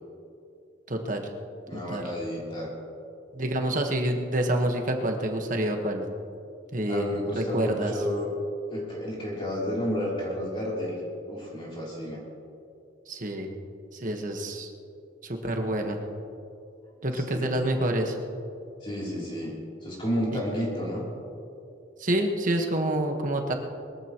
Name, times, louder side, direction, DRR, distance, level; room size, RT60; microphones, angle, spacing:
voice 1, 0.9-1.3 1.7-2.1 3.3-6.0 6.7-7.9 13.1-13.5 13.9-14.7 15.2-16.0 17.0-18.2 22.0-23.5, right 1 dB, 45° right, 3 dB, 1.4 m, -27 dB
voice 2, 1.7-2.7 6.9-8.3 8.7-11.0 11.3-12.2 17.1-17.5 18.8-21.0, equal, 30° left, -5 dB, 3.3 m, -31 dB
22.0 x 14.5 x 3.1 m, 2.7 s
head